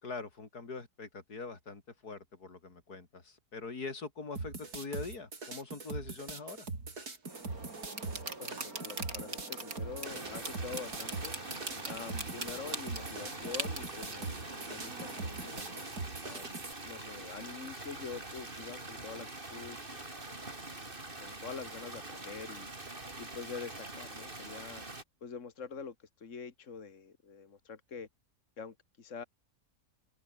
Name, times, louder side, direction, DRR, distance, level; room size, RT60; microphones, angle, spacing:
voice 1, 0.0-6.7, left 4 dB, 90° left, 3.9 m, -43 dB
sound 1, 4.4-16.7, right 3 dB, 90° right, 4.4 m, -42 dB
sound 2, 7.2-15.8, right 3 dB, 70° right, 4.9 m, -43 dB
voice 2, 8.4-11.4 11.8-15.1 15.4-15.6 16.2-20.0 20.3-20.5 20.8-20.9 21.2-22.7 23.2-24.8 25.2-28.1 28.6-29.2, left 5 dB, 55° left, 2.2 m, -45 dB
sound 3, 10.0-25.0, right 2 dB, 35° right, 3.7 m, -44 dB
open air
omnidirectional pair, 1.6 m